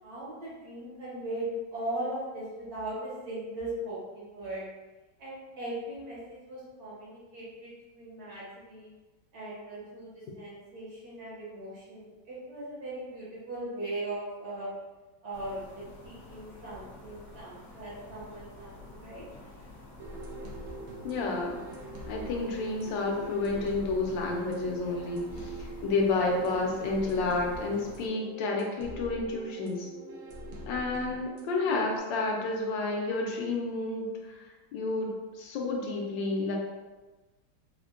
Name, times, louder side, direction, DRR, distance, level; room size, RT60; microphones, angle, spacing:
voice 1, 0.0-1.5 1.7-4.6 5.2-8.9 9.3-14.7 15.2-19.2, right 1 dB, 60° right, -7 dB, 1.4 m, -39 dB
sound 1, 15.3-28.1, left 2 dB, 60° left, 1.0 m, -49 dB
sound 2, 20.0-32.0, right 2 dB, 80° right, 0.7 m, -43 dB
voice 2, 21.0-21.6 22.1-29.9 30.7-35.1 35.3-36.5, left 3 dB, 80° left, 0 dB, 1.2 m, -30 dB
4.2 x 2.1 x 2.4 m, 1.2 s
omnidirectional pair, 2.0 m